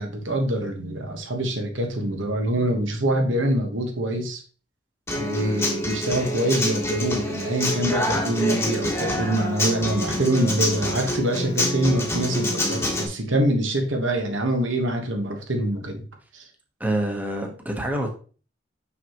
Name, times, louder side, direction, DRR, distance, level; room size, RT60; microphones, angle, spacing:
voice 1, 0.0-4.4 5.1-16.0 16.3-16.4, right 1 dB, 85° right, 3 dB, 1.4 m, -25 dB
Human voice / Acoustic guitar, 5.1-13.1, left 1 dB, 15° left, 1.3 m, -26 dB
voice 2, 16.8-18.1, right 1 dB, 10° right, 2 dB, 1.1 m, -27 dB
6.1 x 5.8 x 3.0 m, 0.37 s
head